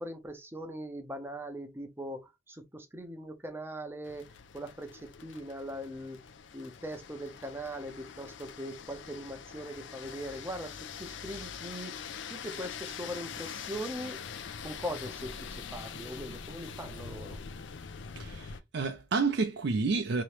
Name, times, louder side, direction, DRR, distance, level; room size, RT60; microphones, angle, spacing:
voice 1, 0.0-4.3 4.5-6.2 6.5-11.9 12.3-14.2 14.6-17.4, equal, 10° right, 0.6 m, -40 dB
sound 1, 4.0-18.6, left 6 dB, 65° left, 0.5 m, -44 dB
voice 2, 18.2-20.2, right 4 dB, 60° right, 0.5 m, -30 dB
3.0 x 2.8 x 3.2 m
head